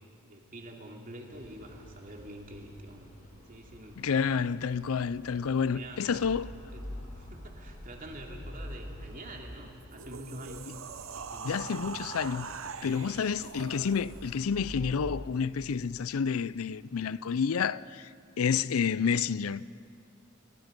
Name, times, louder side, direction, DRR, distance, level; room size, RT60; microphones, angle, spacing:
voice 1, 0.2-3.1 3.4-4.0 5.4-6.3 6.7-6.8 7.1-11.8 12.5-12.9, right 1 dB, 40° right, 2.8 m, -46 dB
sound 1, 1.3-15.2, equal, 35° left, 5.3 m, -47 dB
voice 2, 4.0-6.5 11.4-12.5 12.8-18.1 18.4-19.6, left 6 dB, 80° left, 0.5 m, -29 dB
sound 2, 9.8-14.4, right 5 dB, 65° right, 0.9 m, -42 dB
29.5 x 22.5 x 5.3 m
head